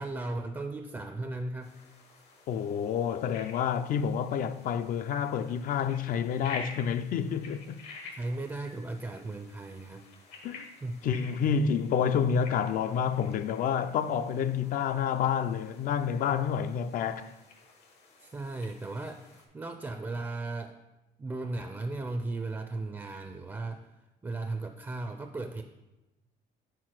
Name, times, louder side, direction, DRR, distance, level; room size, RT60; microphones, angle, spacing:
voice 1, 0.0-1.8 8.1-10.1 10.8-11.1 11.4-11.7 18.2-19.2 19.5-20.8 21.2-23.9 24.2-25.6, right 2 dB, 15° right, 0.4 m, -36 dB
sound 1, 1.6-19.5, left 4 dB, 75° left, 1.2 m, -50 dB
voice 2, 2.5-7.8 10.4-10.7 11.0-17.3, left 7 dB, 55° left, 0.4 m, -29 dB
4.7 x 4.4 x 5.9 m
cardioid pair, 110°, 17 cm